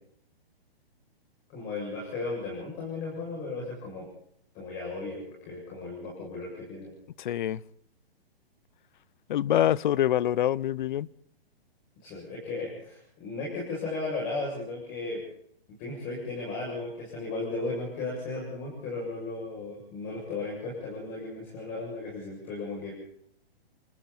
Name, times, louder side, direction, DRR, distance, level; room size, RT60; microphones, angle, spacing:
voice 1, 1.5-4.1 4.5-6.9 12.0-15.2 15.8-22.9, left 3 dB, 25° left, 7.6 m, -35 dB
voice 2, 7.2-7.6 9.3-11.1, left 11 dB, 50° left, 0.8 m, -25 dB
29.5 x 20.5 x 4.4 m
hypercardioid pair, 145°, 31 cm